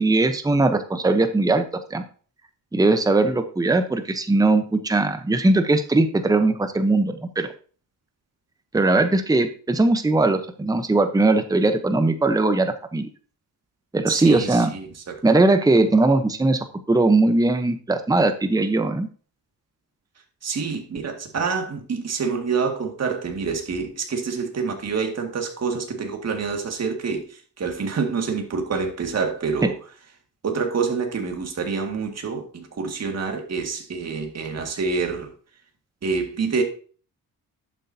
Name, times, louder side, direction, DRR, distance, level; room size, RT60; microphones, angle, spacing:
voice 1, 0.0-1.7 1.9-2.0 2.7-7.5 8.7-13.1 13.9-14.7 15.2-19.1 29.6-29.7, right 2 dB, 10° right, 0.8 m, -20 dB
voice 2, 14.1-15.2 20.4-27.3 27.6-29.7 30.4-35.3 36.0-36.6, right 5 dB, 45° right, 2.1 m, -27 dB
11.0 x 7.6 x 2.8 m
cardioid pair, 95°, 35 cm